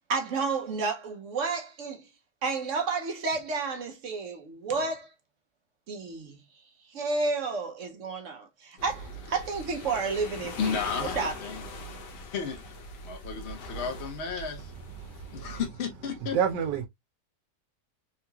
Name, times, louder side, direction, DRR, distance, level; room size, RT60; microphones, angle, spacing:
voice 1, 0.1-2.1 2.4-5.1 5.9-6.4 6.9-10.8 11.2-11.5, right 4 dB, 60° right, 0.9 m, -31 dB
sound 1, 8.8-15.7, left 1 dB, 85° left, 1.6 m, -41 dB
voice 2, 10.6-11.6 12.3-12.6 13.0-14.7 15.3-16.4, left 6 dB, 50° left, 0.9 m, -33 dB
voice 3, 16.3-16.9, right 8 dB, 85° right, 1.3 m, -26 dB
3.7 x 2.8 x 2.2 m
omnidirectional pair, 1.8 m